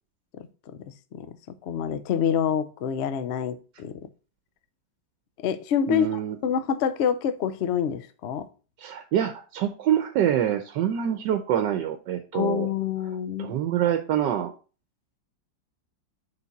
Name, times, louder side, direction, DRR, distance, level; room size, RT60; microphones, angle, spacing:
voice 1, 1.6-4.0 5.4-8.5 12.3-13.5, left 8 dB, 85° left, 0.5 m, -27 dB
voice 2, 5.9-6.4 8.8-12.7 13.4-14.5, right 10 dB, 75° right, 1.3 m, -25 dB
6.9 x 5.3 x 4.0 m
omnidirectional pair, 2.0 m